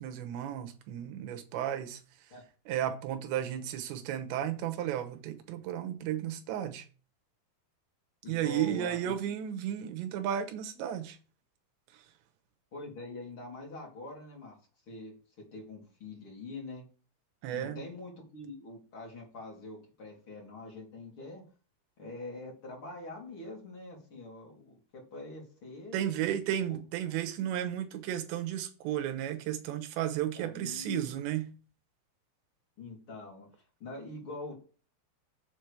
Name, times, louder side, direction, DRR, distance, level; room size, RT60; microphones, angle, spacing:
voice 1, 0.0-2.0 2.7-6.9 8.3-11.2 11.9-12.0 17.4-17.8 25.9-31.4, right 11 dB, 75° right, 3.0 m, -33 dB
voice 2, 8.2-9.3 12.7-14.6 14.9-16.9 17.5-21.4 22.0-26.3 26.7-26.8 30.3-31.0 32.8-33.5 33.8-34.5, left 2 dB, 30° left, 3.0 m, -44 dB
8.0 x 6.1 x 5.1 m
omnidirectional pair, 5.9 m